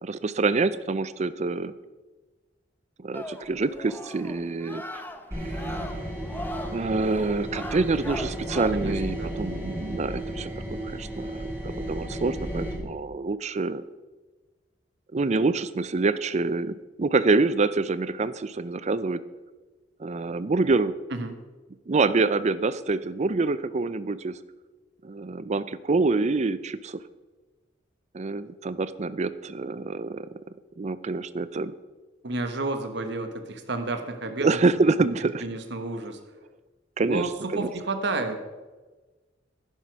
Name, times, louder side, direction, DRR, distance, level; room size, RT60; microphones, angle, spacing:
voice 1, 0.0-1.7 3.0-5.0 5.4-5.9 6.7-11.4 11.6-13.8 15.1-19.2 20.0-20.9 21.9-24.4 25.0-27.0 28.1-30.3 30.8-31.7 34.4-35.4 37.0-37.3 37.5-37.7, right 3 dB, 40° right, 15 dB, 0.5 m, -26 dB
sound 1, 3.1-8.7, left 1 dB, 10° left, 0.8 m, -39 dB
sound 2, 5.3-12.7, right 1 dB, 15° right, 3.8 m, -33 dB
voice 2, 8.7-9.3 21.1-21.4 32.2-34.6 35.4-36.2 37.1-38.4, right 2 dB, 65° right, 7 dB, 1.3 m, -31 dB
11.0 x 10.0 x 4.6 m, 1.3 s
head